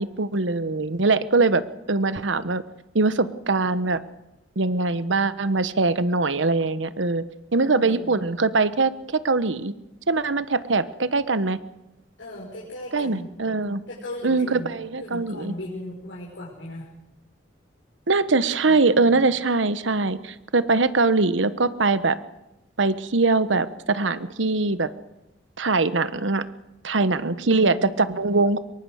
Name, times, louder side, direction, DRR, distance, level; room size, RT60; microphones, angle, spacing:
voice 1, 0.0-1.6 1.9-2.6 2.9-4.0 4.6-7.2 7.5-9.7 10.1-11.6 12.9-13.8 14.2-15.5 18.1-22.2 22.8-24.9 25.6-26.4 26.8-28.6, right 3 dB, 85° right, 14 dB, 1.1 m, -22 dB
voice 2, 7.5-8.2 12.2-13.3 13.9-14.7 15.0-16.9 18.5-19.2 27.4-28.1, left 1 dB, 85° left, -5 dB, 5.9 m, -38 dB
24.5 x 23.0 x 6.5 m, 0.97 s
head